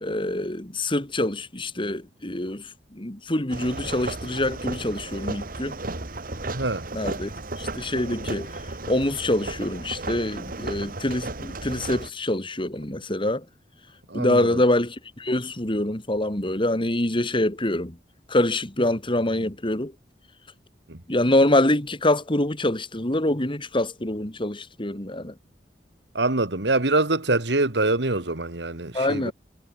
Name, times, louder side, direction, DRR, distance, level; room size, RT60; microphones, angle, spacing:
voice 1, 0.0-5.8 6.9-7.3 7.6-8.6 8.9-13.4 14.1-18.0 18.3-19.9 21.1-25.3 28.9-29.3, left 1 dB, 30° left, 2.9 m, -25 dB
sound 1, 3.5-12.1, right 2 dB, 55° right, 2.4 m, -34 dB
voice 2, 6.5-6.9 14.1-14.6 20.9-21.0 26.1-29.3, right 2 dB, 80° right, 2.3 m, -24 dB
head